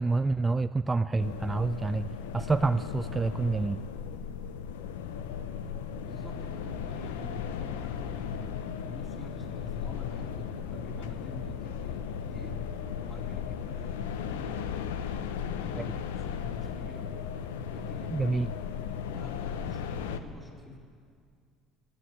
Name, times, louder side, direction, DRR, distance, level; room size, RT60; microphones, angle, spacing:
voice 1, 0.0-2.1 2.3-3.8 18.1-18.5, right 3 dB, 20° right, 12 dB, 0.3 m, -27 dB
sound 1, 1.2-20.2, left 7 dB, 90° left, 0.7 m, -36 dB
voice 2, 6.1-12.6 13.0-14.7 15.3-17.2 17.6-18.4 19.0-20.8, left 1 dB, 20° left, -1 dB, 3.6 m, -47 dB
17.5 x 10.0 x 7.9 m, 2.2 s
supercardioid pair, 80°, 0 cm